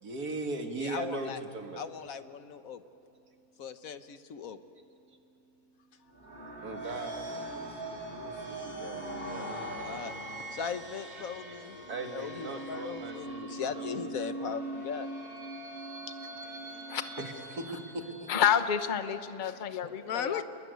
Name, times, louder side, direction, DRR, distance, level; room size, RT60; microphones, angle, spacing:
voice 1, 0.0-1.8 6.6-9.0 9.3-10.1 11.8-14.1 14.4-14.5 16.6-18.3, right 2 dB, 85° right, 4 dB, 2.5 m, -40 dB
voice 2, 0.8-1.4 1.8-2.8 3.6-4.6 9.5-10.1 10.5-11.8 12.1-15.1 19.8-20.4, left 7 dB, 65° left, 10 dB, 1.4 m, -38 dB
sound 1, 6.1-18.6, right 1 dB, 35° right, 4.2 m, -41 dB
voice 3, 18.3-20.4, left 8 dB, 35° left, 9 dB, 1.0 m, -29 dB
29.5 x 20.5 x 9.3 m, 2.8 s
omnidirectional pair, 1.6 m